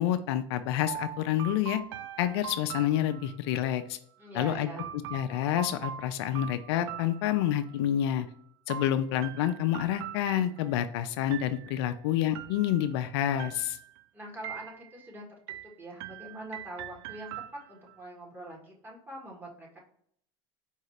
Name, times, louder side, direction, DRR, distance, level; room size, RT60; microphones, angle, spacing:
voice 1, 0.0-1.8 2.2-4.0 4.3-4.7 5.1-8.3 8.7-13.8, left 11 dB, 75° left, 10 dB, 0.4 m, -28 dB
sound 1, 0.9-3.6 4.8-7.8 8.7-10.9 11.3-11.9 12.3-13.0 13.4-14.0 14.4-15.1 15.5-18.0, right 10 dB, 75° right, 0.4 m, -42 dB
voice 2, 4.2-5.0 14.1-17.3 17.7-19.8, right 1 dB, 15° right, -2 dB, 1.7 m, -44 dB
4.7 x 2.7 x 3.2 m, 0.65 s
supercardioid pair, 105°, 14 cm